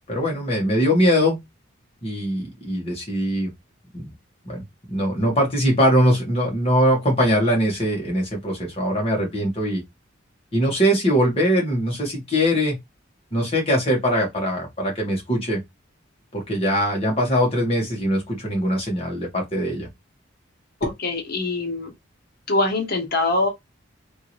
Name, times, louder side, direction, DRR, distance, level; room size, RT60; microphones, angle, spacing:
voice 1, 0.1-1.4 2.0-3.5 3.9-4.1 4.4-4.6 4.9-9.8 10.5-12.8 13.3-15.6 16.3-19.9, equal, 30° left, 1.6 m, -21 dB
voice 2, 20.8-21.9 22.5-23.5, left 2 dB, 50° left, 1.3 m, -23 dB
3.5 x 2.7 x 3.0 m
head